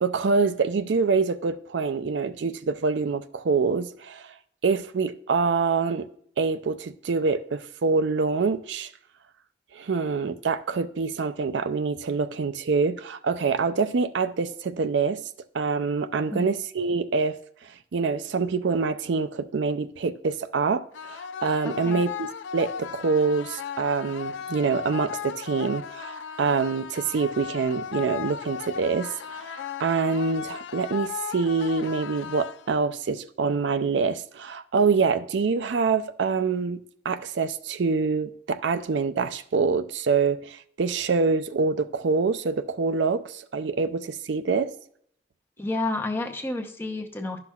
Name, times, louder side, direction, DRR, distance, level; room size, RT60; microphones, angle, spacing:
voice 1, 0.0-4.3 4.6-6.1 6.4-8.9 9.7-15.2 15.5-17.4 17.9-44.7, right 4 dB, 75° right, 0.5 m, -25 dB
sound 1, 20.9-32.9, left 7 dB, 90° left, 0.4 m, -36 dB
voice 2, 21.6-22.0 45.6-47.4, left 2 dB, 10° left, 0.7 m, -30 dB
11.5 x 5.8 x 2.3 m
head